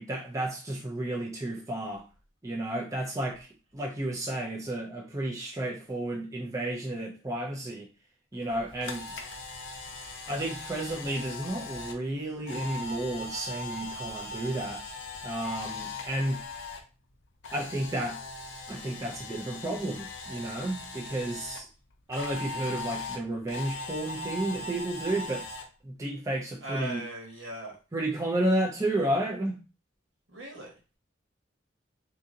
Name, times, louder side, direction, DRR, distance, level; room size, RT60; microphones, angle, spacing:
voice 1, 0.0-2.0 2.4-7.8 8.3-9.1 10.3-14.8 15.2-16.4 17.5-18.2 18.7-21.7 22.1-25.4 25.8-27.0 27.9-29.6, right 1 dB, 15° right, -1 dB, 0.5 m, -32 dB
Camera, 8.5-16.8 17.1-21.6 22.1-25.6, left 2 dB, 90° left, 0.7 m, -39 dB
voice 2, 26.6-27.8 30.3-30.7, right 2 dB, 75° right, 0 dB, 1.3 m, -38 dB
2.8 x 2.6 x 3.7 m, 0.33 s
head